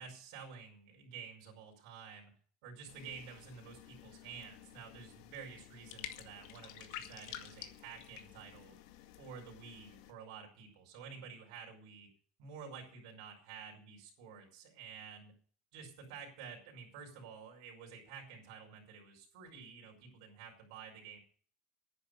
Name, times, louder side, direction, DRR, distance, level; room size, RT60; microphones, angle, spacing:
voice 1, 0.0-2.3 2.6-8.8 9.2-12.1 12.4-15.3 15.7-21.2, right 6 dB, 70° right, 0 dB, 5.2 m, -50 dB
sound 1, 2.9-10.1, left 12 dB, 70° left, 2.0 m, -51 dB
10.5 x 9.9 x 6.8 m, 0.44 s
supercardioid pair, 140°, 3 cm